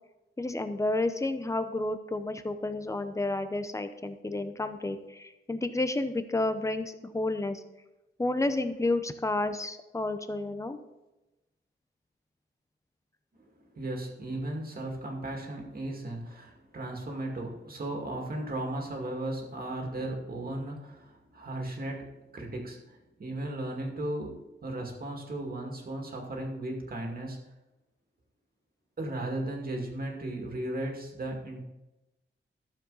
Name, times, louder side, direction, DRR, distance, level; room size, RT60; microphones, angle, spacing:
voice 1, 0.4-7.6 8.2-10.8, left 2 dB, 15° left, 9 dB, 0.7 m, -31 dB
voice 2, 13.5-27.4 29.0-31.6, right 1 dB, 50° right, 1 dB, 2.2 m, -36 dB
13.0 x 7.1 x 4.0 m, 1.0 s
wide cardioid pair, 145°, 20 cm